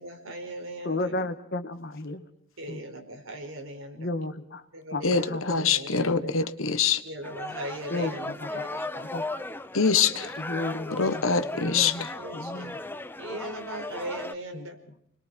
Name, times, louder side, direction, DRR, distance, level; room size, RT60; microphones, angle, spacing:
voice 1, 0.0-1.2 2.6-4.1 4.7-6.3 7.0-8.9 11.2-12.7 13.2-14.8, right 1 dB, 75° right, 4 dB, 5.0 m, -39 dB
voice 2, 0.8-2.3 2.7-2.8 4.0-6.4 7.9-8.6 9.0-9.2 10.4-11.3 11.6-12.8 14.5-14.7, left 2 dB, 50° left, 9 dB, 1.8 m, -34 dB
voice 3, 5.0-7.0 9.7-10.3 11.0-12.0, left 5 dB, 70° left, 11 dB, 1.4 m, -24 dB
sound 1, 7.2-14.3, left 2 dB, 10° left, 0.8 m, -36 dB
30.0 x 21.5 x 4.6 m, 0.68 s
head